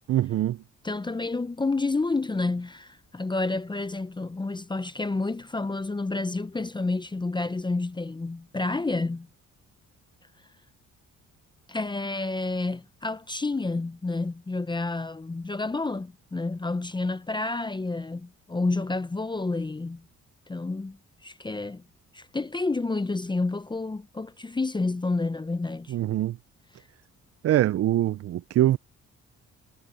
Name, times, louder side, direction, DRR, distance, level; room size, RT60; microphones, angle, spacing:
voice 1, 0.1-0.6 25.9-26.4 27.4-28.8, right 13 dB, 55° right, 0.5 m, -23 dB
voice 2, 0.8-9.3 11.7-20.0 20.5-21.8 22.1-26.0, left 3 dB, 15° left, 0.7 m, -29 dB
cardioid pair, 90°, 30 cm